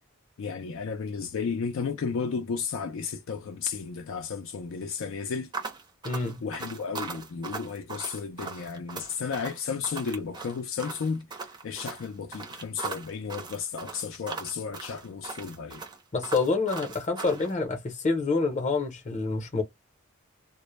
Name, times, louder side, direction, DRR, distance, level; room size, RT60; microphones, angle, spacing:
voice 1, 0.4-5.5 6.4-11.3 11.6-15.8, left 5 dB, 65° left, 0.4 m, -33 dB
sound 1, 5.5-17.5, right 4 dB, 20° right, 0.5 m, -39 dB
voice 2, 6.0-6.4 16.1-19.6, left 3 dB, 35° left, 0.7 m, -27 dB
2.1 x 2.0 x 3.0 m
head